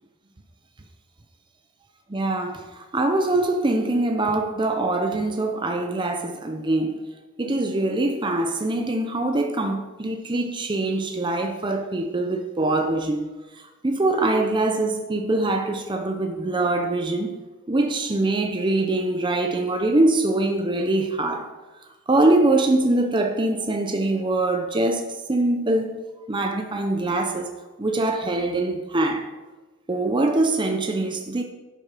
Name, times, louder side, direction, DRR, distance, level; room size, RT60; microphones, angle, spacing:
voice 1, 2.1-7.0 7.4-17.4 17.7-21.5 22.1-26.0 26.3-27.5 27.8-29.3 29.9-31.4, right 2 dB, 20° right, 0.6 m, -23 dB
11.0 x 6.4 x 5.0 m
head